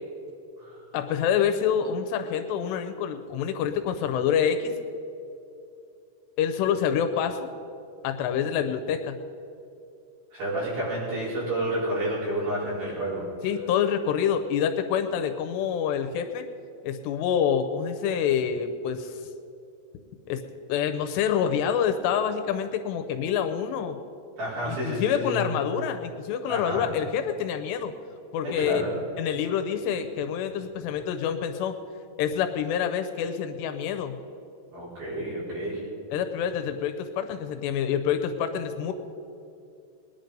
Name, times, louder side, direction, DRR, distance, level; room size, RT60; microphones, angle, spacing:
voice 1, 0.9-4.7 6.4-7.5 8.0-9.2 13.4-16.5 16.8-19.2 20.3-20.4 20.7-24.0 24.6-27.9 28.3-28.8 29.2-31.7 32.2-34.2 36.1-38.9, left 8 dB, 80° left, 7 dB, 2.8 m, -27 dB
voice 2, 10.3-13.3 24.4-25.5 26.5-26.9 28.4-28.9 34.7-35.9, right 1 dB, 55° right, -7 dB, 6.3 m, -30 dB
20.0 x 10.5 x 5.3 m, 2.7 s
omnidirectional pair, 5.1 m